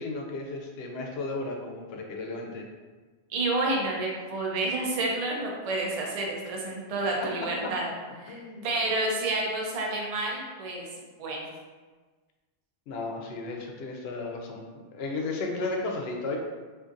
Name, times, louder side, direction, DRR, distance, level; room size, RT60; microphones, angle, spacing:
voice 1, 0.0-2.7 7.2-7.3 7.6-7.7 8.3-8.7 12.9-14.6 14.9-16.4, left 3 dB, 75° left, 1 dB, 0.8 m, -34 dB
voice 2, 3.3-7.9 8.2-10.9 11.2-11.4, right 2 dB, 45° right, -1 dB, 0.5 m, -29 dB
3.8 x 2.5 x 2.5 m, 1.4 s
omnidirectional pair, 1.1 m